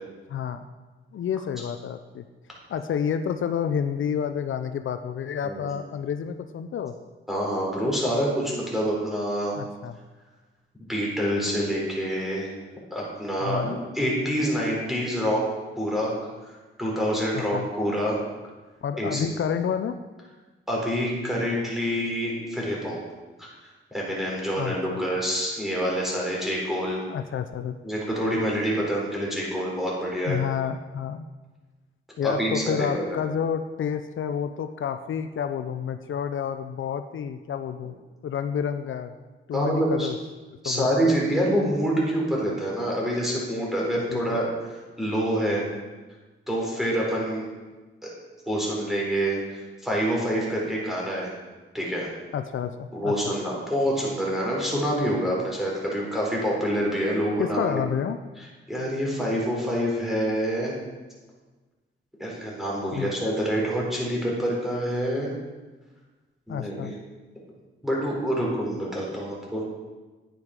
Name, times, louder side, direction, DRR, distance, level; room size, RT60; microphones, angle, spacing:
voice 1, 0.3-0.6 1.1-2.2 2.7-6.9 9.5-10.0 13.4-13.7 17.3-17.7 18.8-20.0 24.6-25.0 27.1-27.7 30.3-31.3 32.2-38.0 38.2-39.2 39.5-40.2 40.6-41.1 44.1-44.4 52.3-53.3 57.4-58.2 62.9-63.1 66.5-66.9, left 8 dB, 70° left, 9 dB, 0.5 m, -29 dB
voice 2, 7.3-9.5 10.9-12.5 12.9-15.4 15.8-16.1 16.5-18.2 19.0-19.3 20.7-23.0 23.4-27.0 27.8-30.4 32.2-33.2 39.5-40.1 40.6-44.5 45.0-45.6 46.5-47.5 48.0-48.1 48.5-51.3 51.7-52.1 52.9-57.8 58.4-60.7 62.2-65.3 66.5-66.9 67.8-69.6, equal, ahead, -4 dB, 3.7 m, -26 dB
9.6 x 9.3 x 4.9 m, 1.3 s
wide cardioid pair, 110°, 21 cm